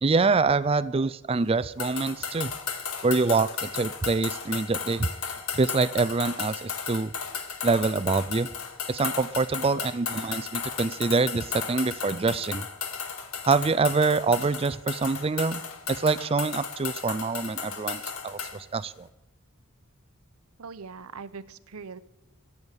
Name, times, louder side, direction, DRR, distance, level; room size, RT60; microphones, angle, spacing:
voice 1, 0.0-2.5 3.0-5.1 5.5-7.1 7.6-8.5 8.9-12.7 13.5-15.6 15.9-19.1, right 4 dB, 25° right, 16 dB, 0.4 m, -25 dB
sound 1, 1.8-18.6, left 6 dB, 75° left, 1.6 m, -35 dB
voice 2, 20.6-22.0, right 5 dB, 85° right, 14 dB, 0.7 m, -41 dB
14.5 x 7.1 x 8.9 m, 1.0 s
head